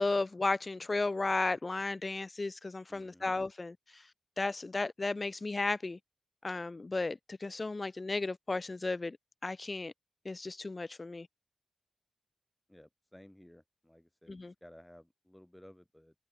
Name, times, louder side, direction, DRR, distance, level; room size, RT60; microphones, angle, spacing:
voice 1, 0.0-4.1 4.4-6.0 6.4-9.2 9.4-9.9 10.3-11.3 14.3-14.5, left 3 dB, 40° left, 0.3 m, -34 dB
voice 2, 2.9-3.2 12.7-16.1, left 1 dB, 10° left, 5.4 m, -57 dB
supercardioid pair, 40°, 0 cm